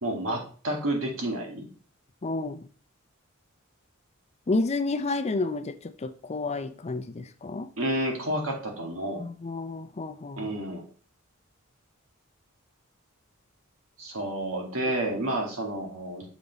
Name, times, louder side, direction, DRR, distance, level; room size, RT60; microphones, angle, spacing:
voice 1, 0.0-1.7 7.8-9.2 10.4-10.9 14.0-16.3, right 1 dB, 75° right, 2.2 m, -30 dB
voice 2, 2.2-2.7 4.5-7.7 9.2-10.5, left 3 dB, 30° left, 0.5 m, -30 dB
7.1 x 5.2 x 4.0 m
head